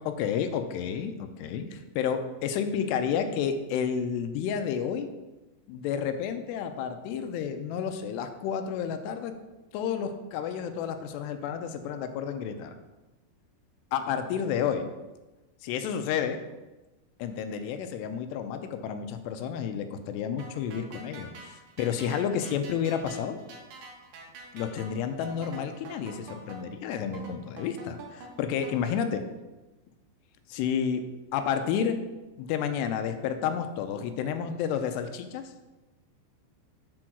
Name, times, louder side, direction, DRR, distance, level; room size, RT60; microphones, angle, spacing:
voice 1, 0.0-5.1 5.7-9.3 9.7-12.7 13.9-14.9 15.6-16.4 17.2-23.4 24.5-29.2 30.5-31.0 31.3-32.0 32.4-35.4, left 8 dB, 85° left, 8 dB, 2.7 m, -31 dB
sound 1, 20.4-29.0, right 3 dB, 70° right, 2.1 m, -46 dB
7.7 x 4.4 x 6.0 m, 1.1 s
omnidirectional pair, 4.9 m